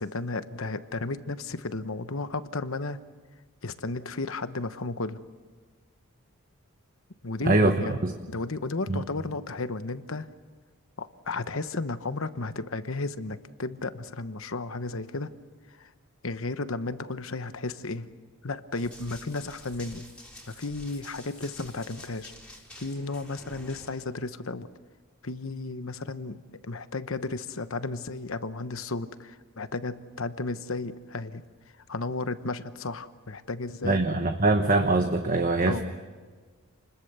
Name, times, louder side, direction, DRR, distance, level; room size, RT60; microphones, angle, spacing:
voice 1, 0.0-3.0 3.6-5.2 7.2-8.0 8.3-10.3 11.0-15.3 15.8-15.9 16.2-18.1 18.4-20.1 20.5-22.3 22.8-24.7 25.2-31.4 31.9-34.1 35.7-35.8, left 3 dB, 60° left, 11 dB, 1.0 m, -33 dB
voice 2, 7.4-8.1 8.9-9.0 33.8-35.8, right 2 dB, 40° right, 5 dB, 1.1 m, -23 dB
Run, 18.7-24.0, left 1 dB, 5° left, 3.8 m, -48 dB
29.0 x 21.5 x 6.8 m, 1.4 s
head